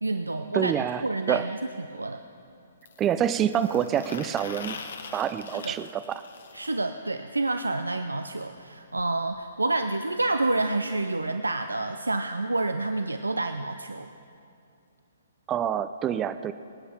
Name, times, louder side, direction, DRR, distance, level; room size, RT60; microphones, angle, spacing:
voice 1, 0.0-1.6 1.9-2.2 5.5-5.8 6.5-14.1, right 2 dB, 90° right, 8 dB, 0.5 m, -28 dB
voice 2, 0.5-1.5 3.0-4.8 5.1-6.2 15.5-16.5, right 9 dB, 20° right, 13 dB, 0.4 m, -27 dB
sound 1, 2.8-6.7 8.6-8.7 9.0-9.1 9.3-9.5 10.4-10.5, left 5 dB, 65° left, 1.3 m, -43 dB
25.0 x 8.4 x 4.4 m, 2.6 s
figure-of-eight pair, 125°, 0 cm